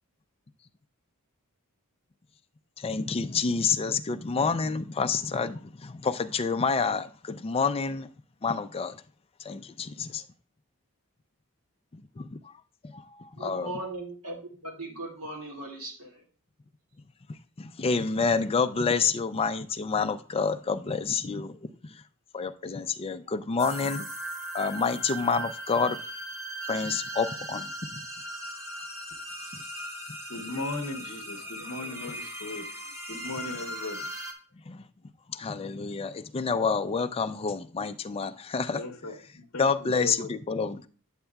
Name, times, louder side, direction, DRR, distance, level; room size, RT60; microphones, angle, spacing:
voice 1, 2.8-8.1 8.4-9.0 9.4-10.2 12.2-12.4 12.8-13.7 17.6-21.7 22.3-24.1 24.5-26.0 26.7-27.7 29.5-29.6 34.7-34.8 35.3-38.8 39.6-40.9, left 5 dB, 25° left, 0.4 m, -28 dB
voice 2, 13.4-16.2, right 2 dB, 70° right, 2.1 m, -38 dB
sound 1, 23.6-34.3, right 1 dB, 15° right, 1.2 m, -38 dB
voice 3, 30.3-32.7 33.1-34.1 35.9-36.0 38.7-40.3 40.7-40.8, left 2 dB, 60° left, 0.8 m, -37 dB
8.7 x 8.2 x 2.3 m
head